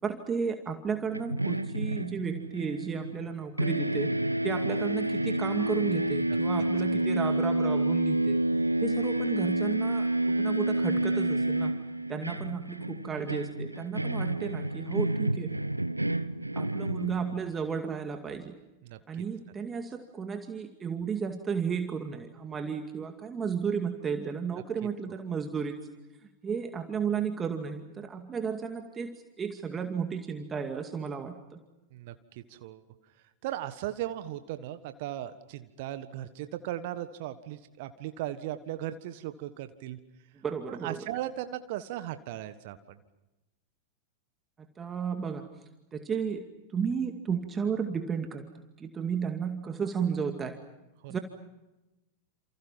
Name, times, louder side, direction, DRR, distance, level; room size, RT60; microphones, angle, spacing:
voice 1, 0.0-4.1 4.4-8.4 8.8-11.7 12.1-15.5 16.6-18.5 19.1-25.8 26.4-31.6 40.4-41.0 44.8-45.4 45.9-46.5 46.7-48.4 48.8-50.6 51.1-51.2, right 6 dB, 20° right, 5 dB, 2.2 m, -33 dB
sound 1, 1.1-3.3 3.6-17.6, right 1 dB, 85° right, 0.9 m, -29 dB
voice 2, 31.9-32.8 33.4-40.0 40.7-43.0 51.0-51.2, right 13 dB, 50° right, 11 dB, 1.5 m, -37 dB
29.5 x 29.0 x 5.8 m, 0.99 s
figure-of-eight pair, 90°, 0 cm